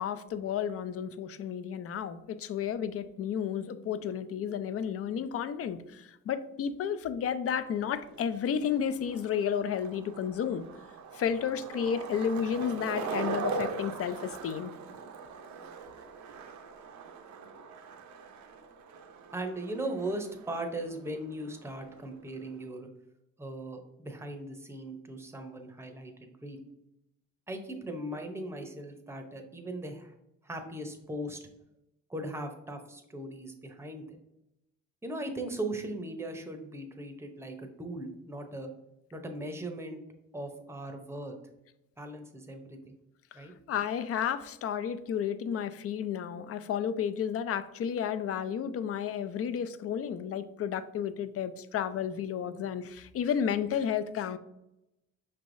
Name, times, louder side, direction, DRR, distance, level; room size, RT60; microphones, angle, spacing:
voice 1, 0.0-10.6 11.1-14.7 43.3-54.4, left 8 dB, 50° left, 12 dB, 0.4 m, -32 dB
Skateboard, 7.5-22.7, right 5 dB, 70° right, 0.6 m, -41 dB
voice 2, 19.3-22.9 23.4-26.6 27.5-30.1 30.4-31.4 32.1-34.2 35.0-38.7 39.1-40.0 40.3-41.3 42.0-43.0 43.3-43.5, right 1 dB, 10° right, 5 dB, 0.7 m, -38 dB
5.4 x 3.3 x 2.6 m, 0.87 s
cardioid pair, 90°, 30 cm